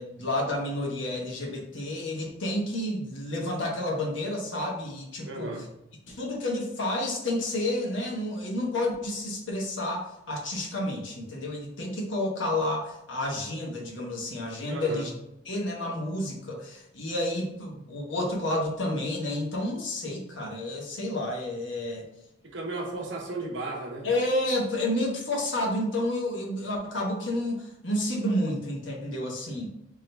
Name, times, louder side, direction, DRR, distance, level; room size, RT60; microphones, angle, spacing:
voice 1, 0.0-5.6 6.1-15.1 15.4-22.0 24.0-29.7, left 1 dB, 85° left, -1 dB, 1.1 m, -30 dB
voice 2, 5.2-5.6 14.7-15.1 22.4-24.1, right 2 dB, 75° right, 0 dB, 0.9 m, -34 dB
3.6 x 2.8 x 3.4 m, 0.86 s
head